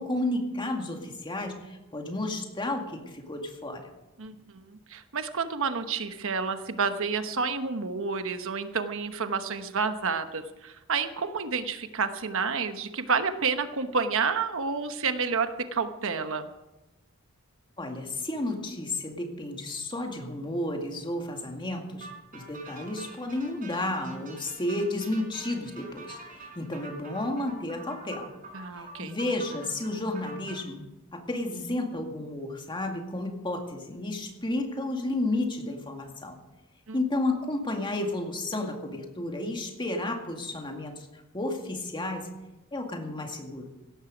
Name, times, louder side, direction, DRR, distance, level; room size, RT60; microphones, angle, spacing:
voice 1, 0.0-3.9 17.8-28.3 28.8-36.4 36.9-42.3 42.7-43.7, left 1 dB, 20° left, 3 dB, 2.1 m, -32 dB
voice 2, 4.2-16.5 28.5-29.2 36.9-37.0, right 5 dB, 65° right, 9 dB, 1.1 m, -30 dB
sound 1, 22.0-30.6, right 3 dB, 40° right, 5.3 m, -46 dB
17.0 x 14.0 x 5.2 m, 1.0 s
head